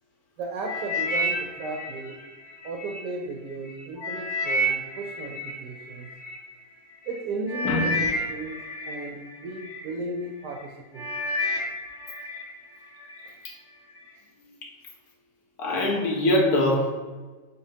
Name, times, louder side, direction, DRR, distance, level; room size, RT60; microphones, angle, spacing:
voice 1, 0.4-2.2 2.6-6.1 7.0-8.6 8.8-11.1, right 2 dB, 70° right, 1 dB, 1.0 m, -35 dB
sound 1, 0.7-3.0 3.5-6.4 7.1-7.2 7.5-9.9 10.4-10.7 11.0-12.5 12.8-13.3 13.9-14.0, equal, 40° left, 0.8 m, -30 dB
voice 2, 7.6-8.1 14.6-14.7 15.6-16.9, left 1 dB, 90° left, -1 dB, 1.4 m, -23 dB
4.3 x 4.2 x 2.7 m, 1.3 s
omnidirectional pair, 1.6 m